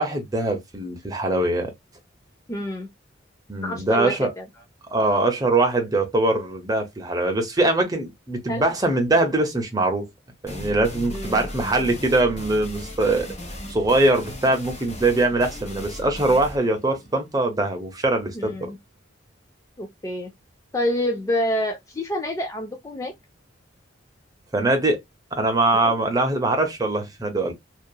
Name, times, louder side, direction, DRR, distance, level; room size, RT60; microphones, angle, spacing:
voice 1, 0.0-1.7 3.5-4.3 4.9-10.1 10.4-13.3 13.7-18.7 24.5-25.0 25.3-27.5, right 2 dB, 20° right, 0.7 m, -22 dB
voice 2, 2.5-2.9 3.6-4.4 8.5-8.6 11.1-11.5 18.3-18.8 19.8-20.3 20.7-23.1 25.8-25.9, left 1 dB, 15° left, 0.3 m, -27 dB
sound 1, 10.5-17.9, left 1 dB, 35° left, 1.2 m, -37 dB
2.8 x 2.4 x 2.2 m
head